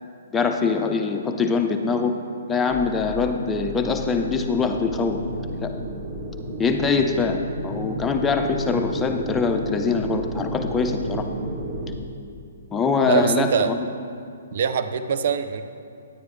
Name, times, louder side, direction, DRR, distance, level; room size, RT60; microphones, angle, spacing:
voice 1, 0.3-2.2 2.5-5.7 6.6-11.3 12.7-13.9, left 4 dB, 15° left, 4 dB, 0.6 m, -23 dB
sound 1, 2.7-11.9, right 1 dB, 20° right, 1.1 m, -32 dB
voice 2, 13.1-13.7 14.5-15.6, right 7 dB, 55° right, 10 dB, 0.6 m, -23 dB
10.0 x 9.2 x 3.3 m, 2.4 s
figure-of-eight pair, 130°, 0 cm